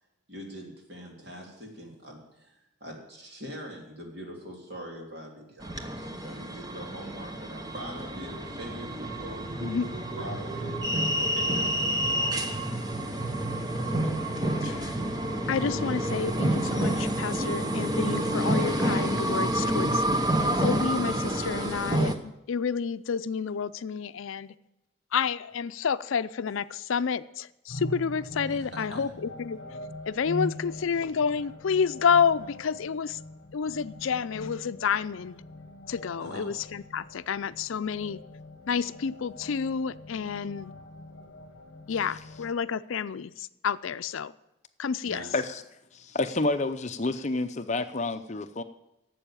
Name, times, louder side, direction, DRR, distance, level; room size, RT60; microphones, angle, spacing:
voice 1, 0.3-9.6 10.2-10.8 11.1-12.5 28.4-29.0 36.2-36.5 45.0-45.3, equal, 50° right, 3.3 m, -43 dB
sound 1, 5.6-22.2, right 1 dB, 20° right, 0.9 m, -28 dB
voice 2, 14.6-15.0 15.5-20.1 20.5-24.5 25.1-29.6 30.1-33.2 33.5-35.4 35.9-38.2 38.7-40.7 41.9-44.3 44.8-45.2, left 6 dB, 75° left, 0.5 m, -29 dB
sound 2, 27.7-42.5, left 1 dB, 60° left, 1.0 m, -42 dB
voice 3, 45.9-48.6, left 2 dB, 35° left, 0.6 m, -29 dB
12.0 x 7.8 x 8.9 m
head